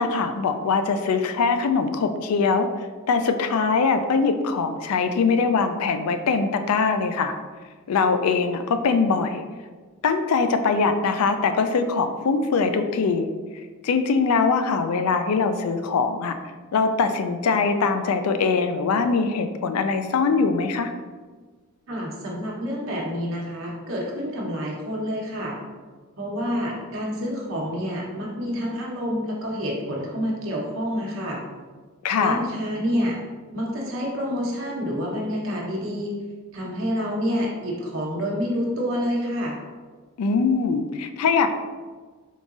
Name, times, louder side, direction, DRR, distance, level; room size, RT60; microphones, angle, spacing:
voice 1, 0.0-2.7 3.1-7.3 7.9-9.4 10.0-13.3 13.8-16.3 16.7-20.9 32.0-32.5 40.2-41.5, left 4 dB, 85° left, 8 dB, 0.4 m, -22 dB
voice 2, 21.9-25.6 26.2-31.4 32.2-33.1 33.5-36.1 36.5-39.6, equal, 70° right, -3 dB, 1.0 m, -28 dB
3.9 x 3.8 x 2.4 m, 1.4 s
head